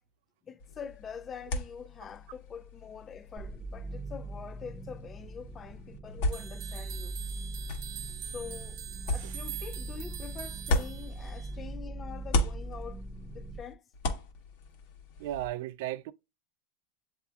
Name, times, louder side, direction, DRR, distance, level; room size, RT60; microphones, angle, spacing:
voice 1, 0.4-7.2 8.0-13.1 13.3-13.9, left 7 dB, 25° left, 0.3 m, -45 dB
sound 1, 0.6-11.8 12.1-15.5, left 2 dB, 65° left, 1.2 m, -37 dB
sound 2, 3.4-13.6, right 2 dB, 15° right, 0.7 m, -41 dB
sound 3, 6.3-11.5, right 11 dB, 45° right, 0.8 m, -44 dB
voice 2, 15.2-16.1, right 14 dB, 65° right, 0.3 m, -35 dB
7.9 x 2.7 x 2.4 m
supercardioid pair, 140°, 0 cm